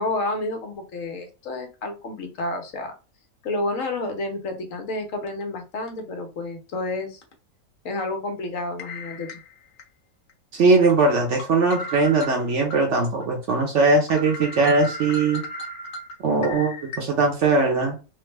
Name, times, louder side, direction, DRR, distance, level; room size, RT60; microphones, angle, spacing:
voice 1, 0.0-2.9 3.4-7.2 7.8-9.4, left 2 dB, 70° left, 4 dB, 1.1 m, -30 dB
sound 1, 5.3-5.4 5.9-6.0 7.2-7.3 8.8-9.8 10.3-10.4 10.9-12.8 13.2-13.3 13.7-13.8 14.1-17.0, equal, 50° left, 0.7 m, -36 dB
voice 2, 10.5-15.4 16.2-18.0, right 3 dB, 60° right, 2 dB, 0.9 m, -20 dB
3.3 x 2.1 x 3.1 m, 0.32 s
omnidirectional pair, 1.5 m